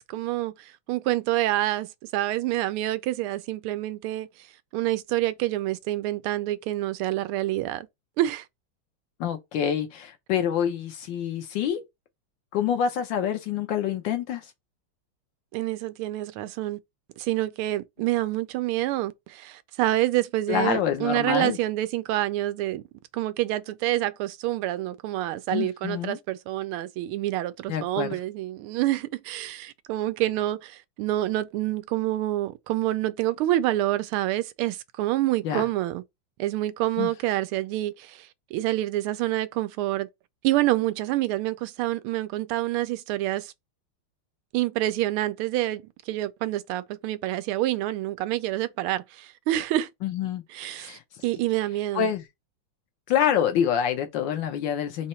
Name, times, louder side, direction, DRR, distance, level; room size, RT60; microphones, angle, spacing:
voice 1, 0.0-4.3 4.7-7.9 8.2-8.5 15.5-16.8 17.2-22.8 23.1-36.0 36.4-40.1 40.4-43.5 44.5-49.9 50.5-52.1, right 15 dB, 85° right, 1.5 m, -27 dB
voice 2, 9.2-11.8 12.5-14.4 20.5-21.6 25.5-26.2 27.7-28.2 35.4-35.7 37.0-37.1 50.0-51.0 51.9-52.2 53.1-55.1, left 8 dB, 70° left, 1.3 m, -26 dB
4.2 x 2.8 x 4.3 m
omnidirectional pair, 2.3 m